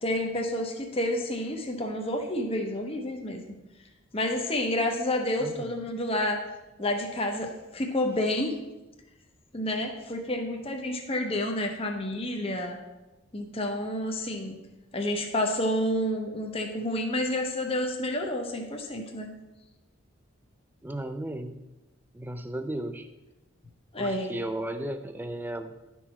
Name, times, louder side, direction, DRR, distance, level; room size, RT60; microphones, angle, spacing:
voice 1, 0.0-3.4 4.1-6.4 6.8-8.5 9.5-12.8 13.3-14.6 14.9-19.3 23.9-24.3, left 1 dB, 30° left, 2 dB, 0.8 m, -29 dB
voice 2, 20.8-21.6 22.1-23.1 24.0-25.7, right 1 dB, 10° right, 8 dB, 0.4 m, -35 dB
11.5 x 4.7 x 4.3 m, 1.0 s
head